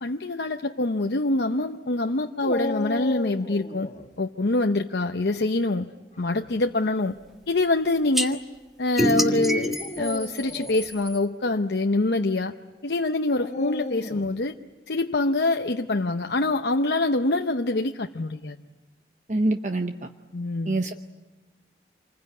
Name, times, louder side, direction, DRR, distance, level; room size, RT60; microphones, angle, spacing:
voice 1, 0.0-3.9 4.2-5.9 6.2-7.2 7.5-8.4 8.8-12.5 12.8-14.5 14.9-18.6 20.3-20.8, left 2 dB, 75° left, 5 dB, 0.8 m, -25 dB
Dog, 2.4-4.1 6.2-6.6 7.4-7.5 9.7-10.9 13.4-14.4, left 2 dB, 40° left, 1.4 m, -34 dB
sound 1, 8.1-8.3 9.0-11.2, equal, ahead, 1.6 m, -26 dB
voice 2, 19.3-20.1 20.7-20.9, right 2 dB, 45° right, 6 dB, 0.8 m, -25 dB
27.5 x 21.0 x 9.4 m, 1.2 s
head